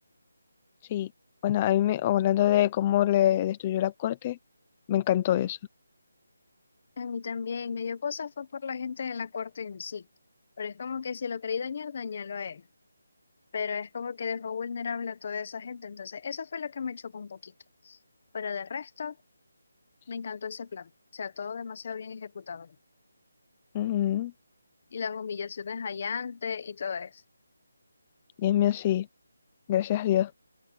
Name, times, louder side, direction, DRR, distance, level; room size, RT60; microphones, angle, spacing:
voice 1, 1.4-4.4 4.9-5.6 23.7-24.3 28.4-29.1 29.7-30.3, left 12 dB, 15° left, 0.6 m, -25 dB
voice 2, 7.0-10.1 10.6-12.6 13.5-17.5 17.8-18.0 18.3-19.2 20.1-22.7 24.9-27.2, left 6 dB, 35° left, 1.1 m, -35 dB
open air
figure-of-eight pair, 175°, 0 cm